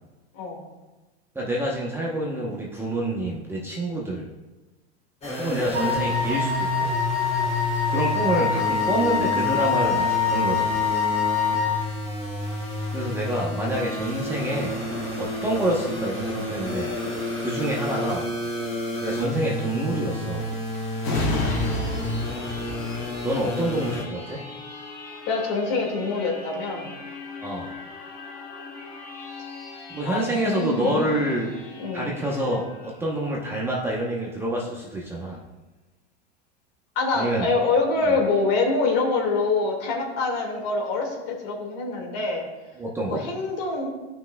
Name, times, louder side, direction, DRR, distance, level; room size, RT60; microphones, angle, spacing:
voice 1, 1.3-4.3 5.4-6.9 7.9-10.8 12.9-14.9 15.2-16.9 17.4-18.3 19.0-20.5 23.2-24.4 27.4-27.7 29.9-31.5 31.9-35.4 37.1-37.5 42.8-43.2, right 1 dB, 5° right, -4 dB, 0.8 m, -27 dB
sound 1, 5.2-24.0, left 1 dB, 20° left, 1.7 m, -30 dB
Wind instrument woodwind instrument, 5.7-11.8, left 7 dB, 70° right, 1.8 m, -25 dB
sound 2, 21.0-34.3 34.8-34.9, left 3 dB, 75° left, 2.5 m, -35 dB
voice 2, 25.3-26.9 30.0-31.2 31.8-32.1 37.0-42.5 43.1-43.9, left 3 dB, 45° left, 0 dB, 2.0 m, -25 dB
14.0 x 5.9 x 2.3 m, 1.1 s
supercardioid pair, 145°, 33 cm